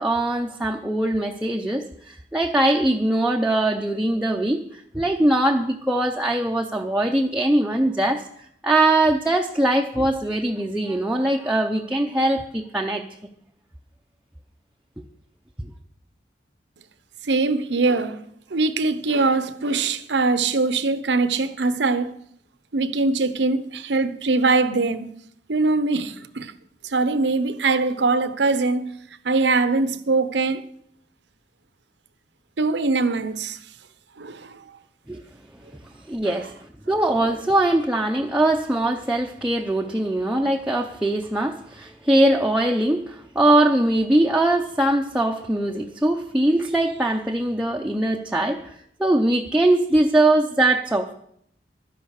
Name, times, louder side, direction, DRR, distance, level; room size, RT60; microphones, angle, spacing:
voice 1, 0.0-8.2 8.6-13.0 35.1-35.2 36.1-36.5 36.9-48.7 49.0-51.1, right 1 dB, 5° right, 0.6 m, -21 dB
voice 2, 17.2-18.2 18.5-22.1 22.7-25.1 25.5-26.5 26.8-28.9 29.2-30.7 32.6-33.6 34.2-34.6 36.2-36.4, right 3 dB, 75° right, 0.9 m, -22 dB
12.0 x 10.5 x 6.5 m
head